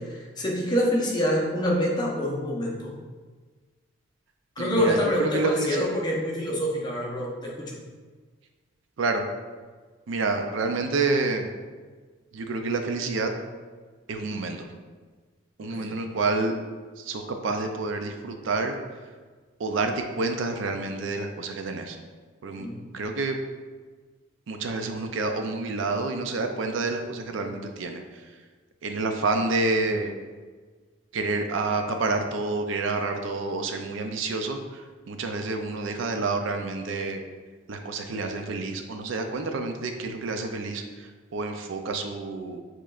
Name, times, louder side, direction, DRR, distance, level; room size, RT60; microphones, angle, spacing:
voice 1, 0.0-2.9 4.6-7.8 15.7-15.9 22.6-22.9, equal, 20° left, -3 dB, 0.7 m, -26 dB
voice 2, 4.6-5.9 9.0-9.2 10.1-11.5 12.3-13.3 14.1-14.7 15.6-16.5 17.0-18.8 19.6-22.0 22.4-22.7 22.9-23.4 24.5-28.0 28.8-30.1 31.1-37.2 37.7-42.6, right 3 dB, 70° right, 5 dB, 0.4 m, -28 dB
6.9 x 3.1 x 2.4 m, 1.4 s
head